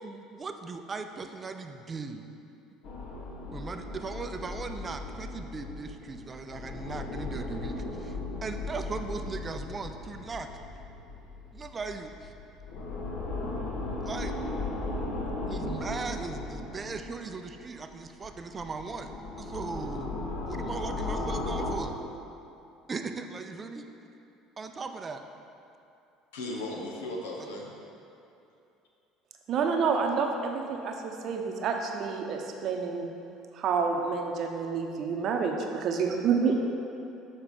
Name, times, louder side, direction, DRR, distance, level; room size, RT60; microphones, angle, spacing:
voice 1, 0.0-2.2 3.5-10.5 11.5-12.3 14.0-14.3 15.5-19.1 19.4-20.2 20.5-22.0 22.9-23.9 24.6-25.2, right 4 dB, 30° right, 7 dB, 0.5 m, -38 dB
sound 1, 2.8-17.9 18.2-21.7, left 2 dB, 60° left, 1.3 m, -36 dB
voice 2, 26.3-27.7, left 1 dB, 85° left, -1 dB, 1.0 m, -36 dB
voice 3, 29.5-33.1 33.5-36.5, right 5 dB, 55° right, 2 dB, 0.8 m, -28 dB
6.7 x 4.4 x 5.3 m, 2.7 s
hypercardioid pair, 70°, 0 cm